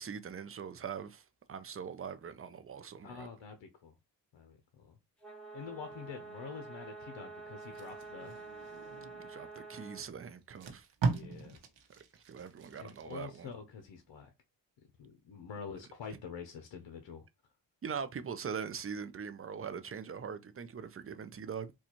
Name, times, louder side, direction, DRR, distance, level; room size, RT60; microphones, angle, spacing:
voice 1, 0.0-3.3 9.2-10.9 12.3-13.5 17.8-21.7, right 6 dB, 30° right, 0.5 m, -42 dB
voice 2, 3.0-3.9 4.3-5.0 5.5-8.4 11.1-11.6 12.8-14.3 15.0-17.3, left 6 dB, 75° left, 0.7 m, -46 dB
sound 1, 5.2-10.1, right 3 dB, ahead, 1.4 m, -48 dB
Packing tape duct tape, 7.6-9.3 10.0-10.1 10.4-13.4 13.8-14.0, right 4 dB, 85° right, 0.9 m, -38 dB
4.0 x 2.3 x 2.9 m
cardioid pair, 80°, 44 cm